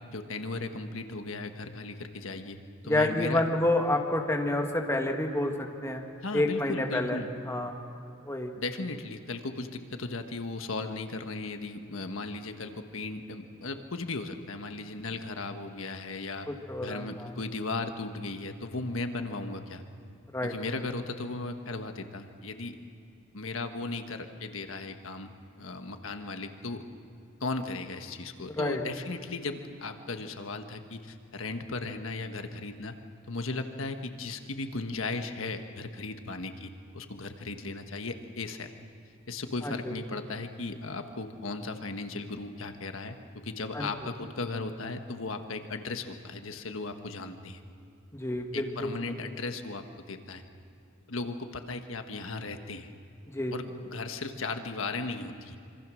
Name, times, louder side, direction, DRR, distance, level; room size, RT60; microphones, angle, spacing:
voice 1, 0.1-2.6 2.8-3.4 6.2-7.3 8.6-16.5 16.8-19.8 20.4-22.8 23.3-25.3 25.6-26.8 27.4-32.9 33.3-38.7 39.3-47.6 48.5-50.4 51.1-52.9 53.5-55.6, left 3 dB, 75° left, 6 dB, 1.4 m, -36 dB
voice 2, 2.8-6.0 6.3-7.2 7.5-7.8 8.2-8.5 16.5-17.3 20.3-20.5 28.6-28.8 39.6-39.8 43.7-43.9 48.1-48.9 53.3-53.5, left 1 dB, 15° left, 2 dB, 1.9 m, -29 dB
26.0 x 25.5 x 6.4 m, 2.6 s
head